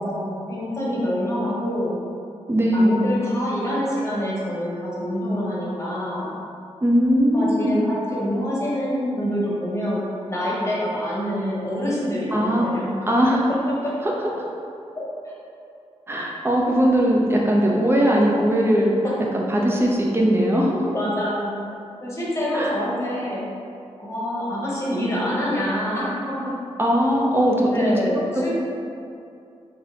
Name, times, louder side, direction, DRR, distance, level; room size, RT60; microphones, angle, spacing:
voice 1, 0.0-2.0 2.7-6.3 7.3-10.0 10.3-12.9 13.5-13.6 13.8-13.9 14.9-15.3 19.0-19.1 20.9-21.6 22.0-23.4 24.0-26.5 27.7-28.2 28.4-28.5, equal, 25° left, -7 dB, 1.0 m, -26 dB
voice 2, 2.5-3.1 6.8-7.8 12.3-12.7 13.1-13.4 14.0-14.5 16.1-19.0 19.3-20.9 22.5-22.7 26.8-27.7 28.3-28.5, equal, 20° right, -2 dB, 0.5 m, -20 dB
3.8 x 2.7 x 2.7 m, 2.5 s
wide cardioid pair, 95°, 12 cm